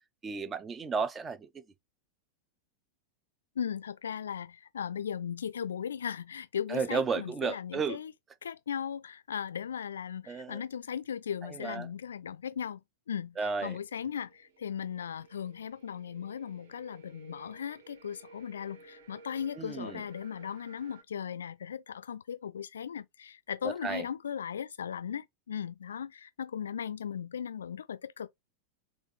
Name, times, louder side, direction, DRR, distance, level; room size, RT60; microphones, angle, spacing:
voice 1, 0.2-1.5 6.7-8.0 10.3-10.6 11.4-11.9 13.4-13.8 19.6-20.0 23.6-24.1, right 5 dB, 20° right, 0.5 m, -33 dB
voice 2, 3.6-8.1 8.4-12.8 13.1-14.3 14.6-28.3, left 8 dB, 65° left, 0.4 m, -37 dB
sound 1, 13.7-21.0, right 4 dB, 60° right, 0.8 m, -56 dB
3.5 x 3.0 x 2.2 m
figure-of-eight pair, 90°, 0 cm